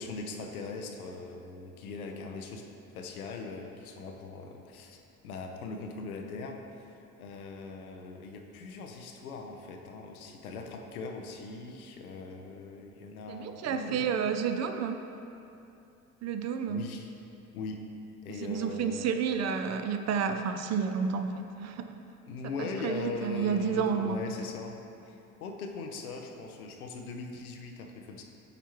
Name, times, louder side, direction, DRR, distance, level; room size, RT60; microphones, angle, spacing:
voice 1, 0.0-2.7 2.9-6.9 7.2-14.1 16.7-17.1 17.5-17.8 18.2-19.2 22.3-28.2, left 4 dB, 85° left, 3 dB, 0.7 m, -40 dB
voice 2, 13.3-15.0 16.2-16.8 18.4-21.9 22.6-24.2, right 6 dB, 40° right, 7 dB, 0.5 m, -30 dB
8.9 x 4.5 x 3.0 m, 2.8 s
hypercardioid pair, 55°, 42 cm